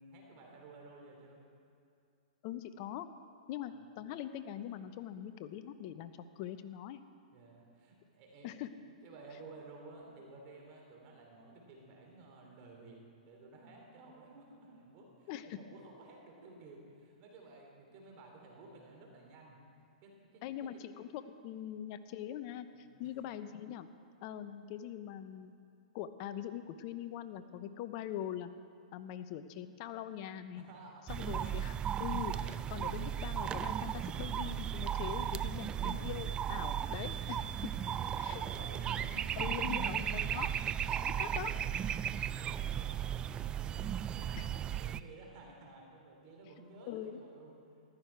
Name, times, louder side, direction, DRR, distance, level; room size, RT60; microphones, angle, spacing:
voice 1, 0.0-1.4 3.7-3.8 7.3-8.5 9.0-13.0 13.2-19.6 20.0-20.7 22.7-23.1 30.5-31.3 37.5-39.3 39.7-40.0 40.5-47.5, right 3 dB, 45° right, 0 dB, 3.1 m, -54 dB
voice 2, 2.4-3.1 3.5-7.0 8.4-8.7 15.3-15.6 20.4-23.9 24.2-25.5 25.9-28.5 28.9-30.6 31.1-37.7 38.2-38.4 39.4-40.5 41.0-41.5 44.3-44.5 46.9-47.2, left 11 dB, 45° left, 11 dB, 0.8 m, -42 dB
sound 1, 31.1-45.0, right 9 dB, 20° right, 0.3 m, -36 dB
15.0 x 12.0 x 4.6 m, 2.5 s
hypercardioid pair, 120°, 4 cm